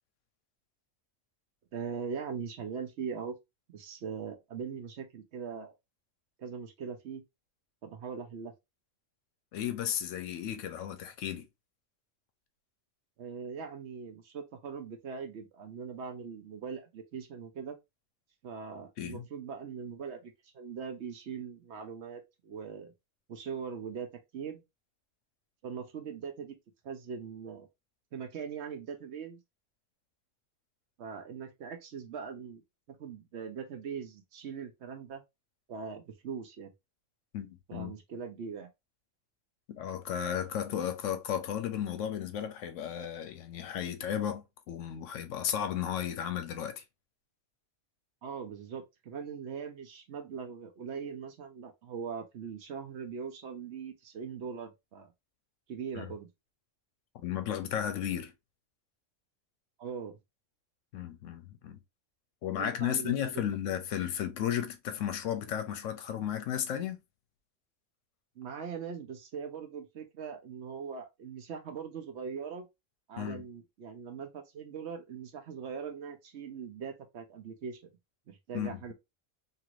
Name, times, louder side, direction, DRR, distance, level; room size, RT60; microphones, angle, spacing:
voice 1, 1.7-3.3 3.7-5.7 6.4-7.2 7.8-8.5 13.2-17.8 18.4-22.9 23.3-24.1 24.3-24.6 25.6-26.5 26.8-27.7 28.1-29.4 31.0-32.6 33.0-35.2 35.7-36.7 37.7-38.7 48.2-55.1 55.7-56.3 59.8-60.2 62.6-63.5 68.4-72.7 73.1-77.8 78.3-78.9, right 6 dB, 65° right, 0.9 m, -41 dB
voice 2, 9.5-11.5 19.0-19.2 37.3-37.9 39.7-46.8 56.0-56.1 57.1-58.3 60.9-61.8 62.4-67.0 73.2-73.5 78.5-78.9, left 9 dB, 75° left, 0.9 m, -34 dB
2.9 x 2.5 x 2.9 m
omnidirectional pair, 1.3 m